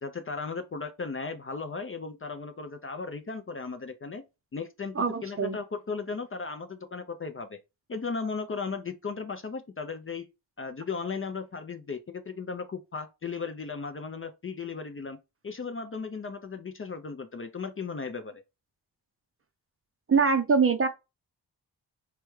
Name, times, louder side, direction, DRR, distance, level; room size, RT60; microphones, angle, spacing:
voice 1, 0.0-4.2 4.5-7.6 7.9-10.3 10.6-15.2 15.4-18.4, left 4 dB, 30° left, 0.5 m, -36 dB
voice 2, 4.9-5.6 20.1-20.9, right 5 dB, 30° right, 0.5 m, -23 dB
3.2 x 2.2 x 3.1 m
supercardioid pair, 40°, 45 cm